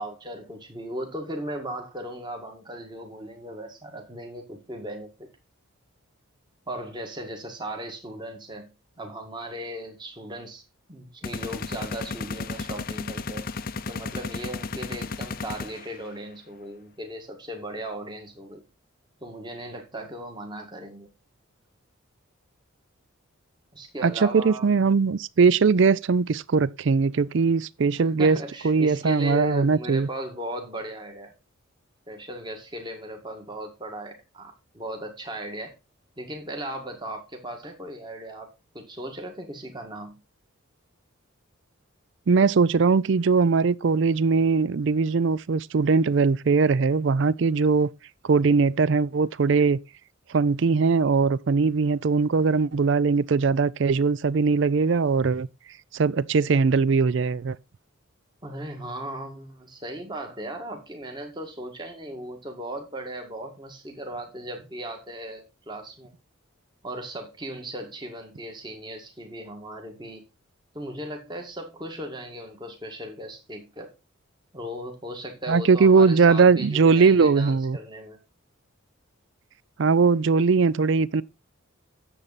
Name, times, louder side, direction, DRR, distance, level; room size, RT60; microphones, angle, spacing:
voice 1, 0.0-5.3 6.7-8.7 9.0-10.6 10.9-13.5 13.9-18.6 19.2-21.1 23.7-24.7 28.0-31.3 32.1-35.7 36.2-40.2 58.4-66.1 66.8-70.2 70.7-73.9 74.5-78.2, right 1 dB, 20° right, 1.8 m, -37 dB
sound 1, 11.2-16.1, left 4 dB, 45° left, 0.6 m, -34 dB
voice 2, 24.0-28.4 28.6-30.1 42.3-47.9 48.2-49.8 50.3-55.5 55.9-57.6 75.5-77.8 79.8-81.2, right 4 dB, 60° right, 0.4 m, -20 dB
9.9 x 7.5 x 4.1 m
head